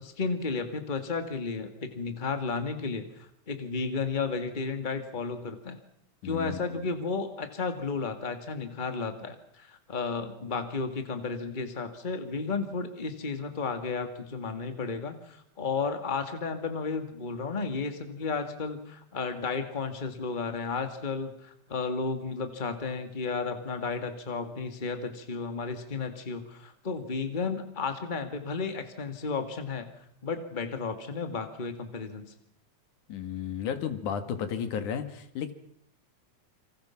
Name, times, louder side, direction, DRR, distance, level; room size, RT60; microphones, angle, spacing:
voice 1, 0.0-5.8 6.2-29.9 30.2-32.3, left 4 dB, 15° left, 7 dB, 2.0 m, -33 dB
voice 2, 6.2-6.7 33.1-35.5, left 7 dB, 85° left, 10 dB, 3.3 m, -33 dB
28.0 x 26.0 x 6.0 m, 0.73 s
omnidirectional pair, 3.4 m